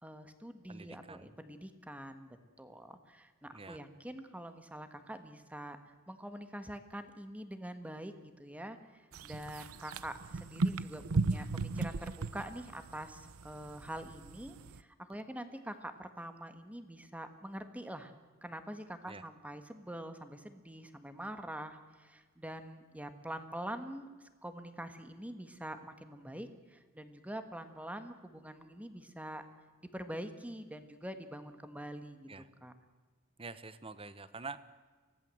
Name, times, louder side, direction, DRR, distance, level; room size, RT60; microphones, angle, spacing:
voice 1, 0.0-18.1 18.4-29.4 29.8-32.3 32.6-32.7, right 1 dB, 5° right, 9 dB, 1.6 m, -45 dB
voice 2, 0.7-1.3 3.5-3.8 19.1-19.2 32.3-32.5 33.4-34.6, right 4 dB, 25° right, 14 dB, 1.0 m, -46 dB
sound 1, 9.1-14.8, right 3 dB, 75° right, 0.7 m, -36 dB
24.5 x 17.5 x 7.8 m, 1.4 s
head